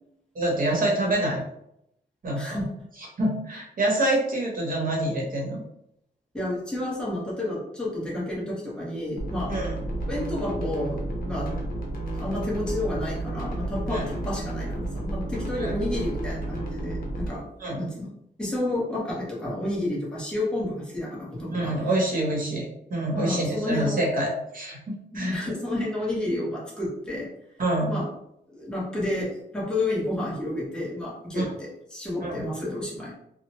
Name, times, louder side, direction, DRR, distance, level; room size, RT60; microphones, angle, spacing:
voice 1, 0.3-1.4 2.2-2.6 3.2-5.6 9.5-9.7 13.9-14.1 15.5-15.7 17.6-17.9 21.5-25.4 27.6-27.9 31.4-31.5 32.2-32.5, right 1 dB, 50° right, -2 dB, 0.9 m, -26 dB
voice 2, 6.3-9.5 10.1-11.6 12.1-17.4 17.7-18.1 18.4-21.7 23.1-24.0 25.1-27.3 27.9-28.1 28.5-33.1, left 1 dB, 5° left, -6 dB, 0.8 m, -30 dB
sound 1, 9.2-17.3, right 1 dB, 55° left, 0.7 m, -32 dB
2.9 x 2.0 x 2.9 m, 0.78 s
wide cardioid pair, 150°, 18 cm